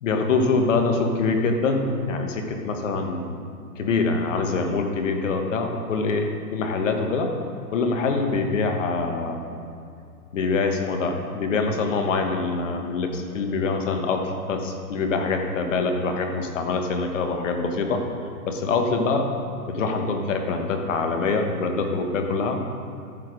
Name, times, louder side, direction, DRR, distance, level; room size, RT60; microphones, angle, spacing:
voice 1, 0.0-3.4 3.8-7.3 7.7-9.5 10.3-18.0 18.4-19.3 19.7-22.6, left 4 dB, 50° left, 4 dB, 1.5 m, -24 dB
14.5 x 5.8 x 5.2 m, 2.4 s
hypercardioid pair, 165°, 48 cm